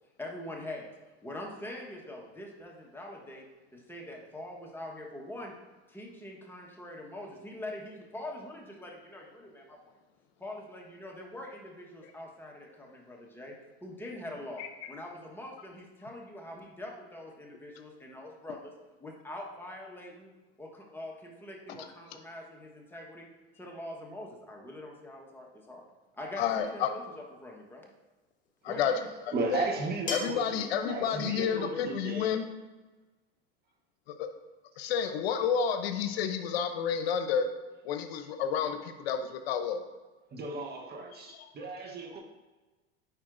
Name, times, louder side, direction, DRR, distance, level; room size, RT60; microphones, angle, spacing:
voice 1, 0.2-0.9 1.2-3.5 3.7-5.5 5.9-9.8 10.4-13.5 13.8-18.7 19.0-20.3 20.6-23.3 23.6-25.8 26.1-27.8 28.7-29.1, left 1 dB, 5° left, -1 dB, 1.2 m, -43 dB
voice 2, 26.4-26.9 28.6-28.9 29.5-29.7 30.1-32.4 34.2-34.3 34.8-37.5 37.8-39.8 41.1-41.5, left 7 dB, 85° left, 8 dB, 0.7 m, -30 dB
sound 1, 26.6-26.9 28.5-28.6 30.1-30.5, left 3 dB, 25° left, 1.3 m, -37 dB
voice 3, 29.3-32.3 40.3-42.2, right 3 dB, 35° right, 2 dB, 1.0 m, -35 dB
9.1 x 4.4 x 2.5 m, 1.2 s
supercardioid pair, 105°, 30 cm